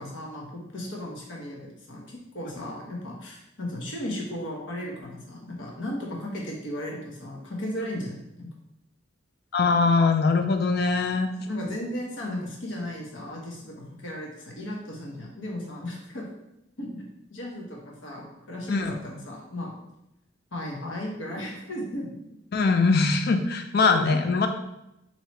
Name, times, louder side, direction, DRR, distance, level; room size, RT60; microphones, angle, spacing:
voice 1, 0.0-8.5 11.4-16.3 16.8-17.0 17.3-19.8 20.5-22.1 24.1-24.2, left 1 dB, 70° left, -2 dB, 1.0 m, -35 dB
voice 2, 9.5-11.3 18.7-18.9 22.5-24.5, left 4 dB, 55° left, 7 dB, 0.4 m, -22 dB
3.0 x 2.8 x 4.4 m, 0.86 s
head